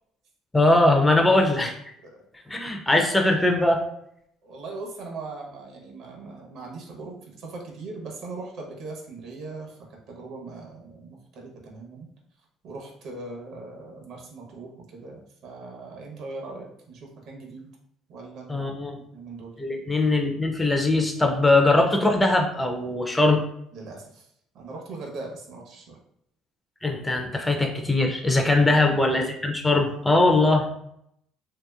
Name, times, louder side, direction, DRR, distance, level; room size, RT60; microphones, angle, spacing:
voice 1, 0.5-1.7 2.5-3.8 18.5-19.0 19.6-23.4 26.8-30.7, left 2 dB, 10° left, 2 dB, 0.4 m, -21 dB
voice 2, 4.4-12.1 12.6-17.7 18.1-18.7 19.1-19.5 23.7-24.3 24.5-26.0 28.5-28.9, right 3 dB, 60° right, 0 dB, 0.8 m, -40 dB
2.9 x 2.8 x 2.3 m, 0.73 s
cardioid pair, 130°, 0 cm